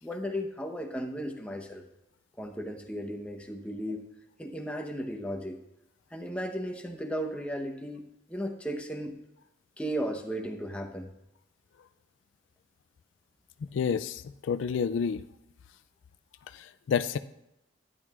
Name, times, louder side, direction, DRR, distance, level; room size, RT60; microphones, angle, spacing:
voice 1, 0.0-1.8 2.4-4.0 4.4-5.6 6.1-8.0 8.3-9.1 9.8-11.1, equal, 5° left, 2 dB, 0.9 m, -35 dB
voice 2, 13.6-15.2 16.5-17.2, left 6 dB, 70° left, 13 dB, 0.3 m, -29 dB
12.0 x 10.5 x 2.4 m, 0.86 s
head